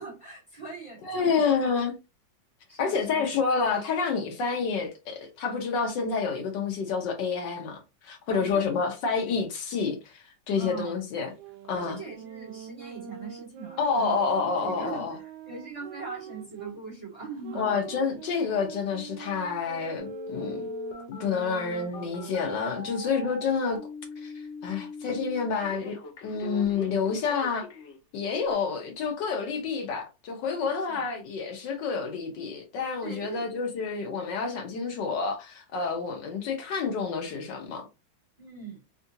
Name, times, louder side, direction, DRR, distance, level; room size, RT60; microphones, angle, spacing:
voice 1, 0.0-1.6 2.7-3.2 8.3-8.6 10.6-11.0 11.7-17.8 30.6-31.0 33.0-33.5 38.4-38.8, right 4 dB, 20° right, 1.3 m, -41 dB
voice 2, 1.0-1.9 2.8-7.8 8.0-11.3 11.7-12.0 13.8-15.1 17.5-20.7 21.1-23.8 24.2-24.3 24.6-26.0 26.2-27.7 28.1-37.9, left 5 dB, 70° left, 1.3 m, -29 dB
sound 1, 11.3-16.8 17.4-22.8, right 8 dB, 70° right, 1.1 m, -44 dB
Telephone, 20.0-28.0 28.5-28.6, left 3 dB, 55° left, 0.8 m, -40 dB
3.7 x 2.3 x 2.6 m
omnidirectional pair, 2.1 m